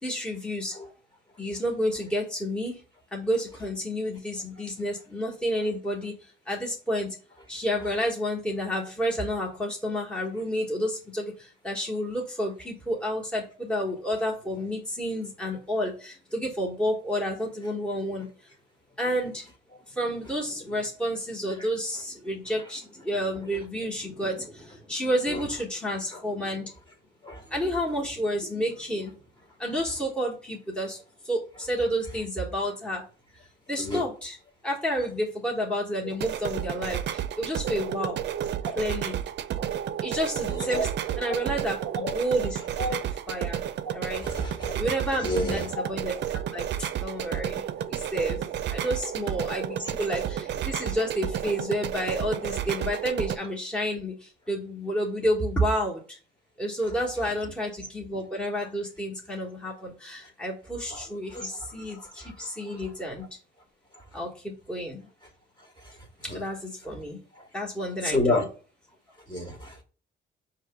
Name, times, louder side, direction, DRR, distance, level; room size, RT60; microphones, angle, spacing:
voice 1, 0.0-0.8 1.4-2.8 3.1-7.2 7.5-18.3 19.0-19.5 19.9-26.7 27.5-29.2 29.6-31.0 31.2-33.0 33.3-33.4 33.7-34.4 34.6-38.2 38.8-39.2 40.0-40.9 41.2-42.6 43.3-43.6 43.9-56.2 56.6-63.2 64.1-65.1 66.3-67.2 67.5-68.4, equal, 5° left, 1.2 m, -30 dB
voice 2, 27.2-27.5 33.8-34.0 38.6-38.8 40.5-40.8 41.3-41.4 42.0-42.1 42.8-43.0 44.2-44.9 45.2-45.7 49.8-49.9 60.9-62.9 63.9-64.0 65.6-66.4 67.3-67.5 68.0-68.4 69.3-69.8, left 1 dB, 20° left, 1.4 m, -31 dB
sound 1, 36.1-53.4, right 10 dB, 60° right, 0.5 m, -32 dB
4.7 x 2.9 x 3.4 m
cardioid pair, 90°, 20 cm